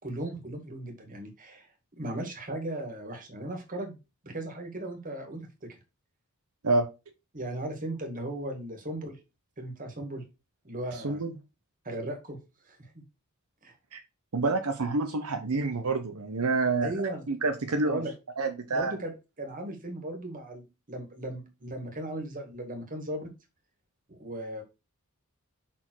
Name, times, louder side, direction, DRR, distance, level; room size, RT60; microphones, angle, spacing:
voice 1, 0.0-1.7 1.9-4.0 4.2-5.8 7.3-9.2 9.6-10.2 10.6-11.2 11.8-12.4 12.6-13.0 13.6-13.7 16.8-17.2 17.8-18.1 18.7-23.3 24.1-24.6, right 1 dB, 40° right, 3 dB, 1.9 m, -37 dB
voice 2, 14.3-16.9 17.3-18.0 18.4-18.9, right 3 dB, 80° right, 6 dB, 0.9 m, -27 dB
5.8 x 4.4 x 4.6 m, 0.27 s
head